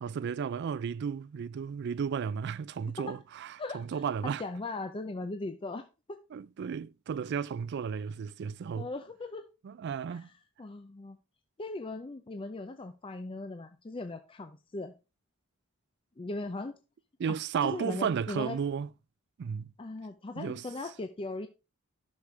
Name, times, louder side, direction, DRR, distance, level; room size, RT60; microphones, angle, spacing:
voice 1, 0.0-4.4 6.3-8.9 9.6-10.3 17.2-18.9 19.4-19.7 20.4-20.6, right 7 dB, 55° right, 0.3 m, -33 dB
voice 2, 3.6-6.2 8.7-9.5 10.1-10.3 10.6-11.2 11.6-14.9 16.2-16.8 17.6-18.6 19.8-21.5, left 2 dB, 25° left, 0.5 m, -39 dB
11.5 x 6.4 x 3.2 m
head